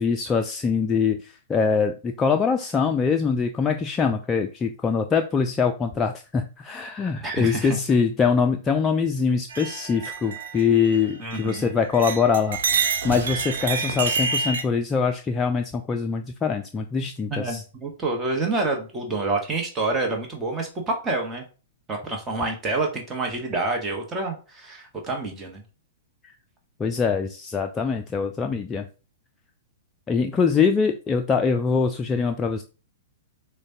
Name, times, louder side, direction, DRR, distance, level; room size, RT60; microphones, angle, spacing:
voice 1, 0.0-17.6 26.8-28.8 30.1-32.6, left 5 dB, 20° left, 4 dB, 0.3 m, -23 dB
voice 2, 7.2-7.8 11.2-11.7 17.3-21.4 21.9-25.6, right 2 dB, 20° right, 1 dB, 0.9 m, -28 dB
sound 1, 9.5-11.6 11.9-14.6, right 5 dB, 65° right, 0.7 m, -28 dB
6.3 x 2.1 x 2.7 m, 0.34 s
figure-of-eight pair, 110°, 0 cm